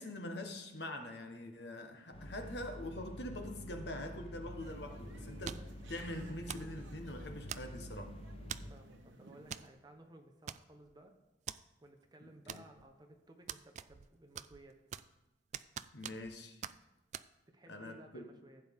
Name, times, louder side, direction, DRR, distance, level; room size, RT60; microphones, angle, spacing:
voice 1, 0.0-8.2 12.2-12.6 15.9-16.6 17.7-18.2, left 1 dB, 65° left, 1.3 m, -44 dB
sound 1, 2.1-8.7, equal, 30° left, 0.8 m, -48 dB
sound 2, 4.6-9.7, right 1 dB, 85° right, 1.1 m, -56 dB
sound 3, 5.4-5.8 6.5-6.7 7.5-7.9 8.5-8.8 9.5-9.7 10.0-10.1 10.5-10.9 11.5-11.6 12.5-12.9 13.5-14.1 14.3-15.2 15.5-16.3 16.6-16.8 17.1-17.3, right 9 dB, 40° right, 0.3 m, -44 dB
voice 2, 8.7-11.1 11.8-14.8 17.5-18.6, right 1 dB, 20° right, 1.0 m, -58 dB
15.0 x 8.3 x 3.7 m
head